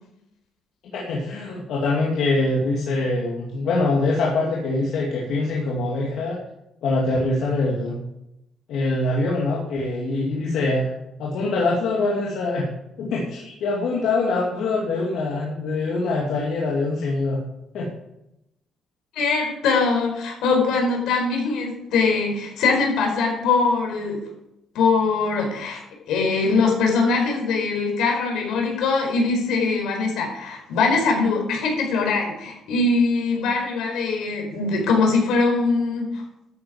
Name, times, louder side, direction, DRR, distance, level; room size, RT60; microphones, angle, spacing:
voice 1, 0.9-6.4 6.8-8.0 8.7-10.9 11.2-12.7 13.0-17.4 17.7-17.9, left 2 dB, 60° left, -4 dB, 2.4 m, -24 dB
voice 2, 19.1-24.2 24.7-36.2, left 4 dB, 80° left, 1 dB, 4.5 m, -22 dB
12.5 x 8.9 x 5.0 m, 0.83 s
cardioid pair, 180°, 0 cm